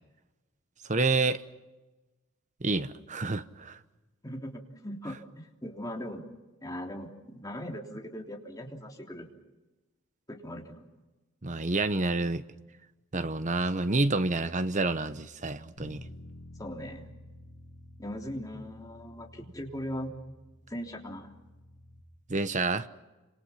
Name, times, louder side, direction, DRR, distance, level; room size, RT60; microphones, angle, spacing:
voice 1, 0.8-1.4 2.6-3.8 11.4-12.4 13.1-16.0 22.3-22.9, right 3 dB, 35° right, 1.0 m, -28 dB
voice 2, 4.2-6.2 6.6-9.3 10.3-10.8 16.6-17.0 18.0-20.1 20.7-21.3, equal, 15° left, 3.3 m, -39 dB
Bass guitar, 15.8-22.0, left 1 dB, 70° left, 5.3 m, -51 dB
29.5 x 27.0 x 5.9 m
head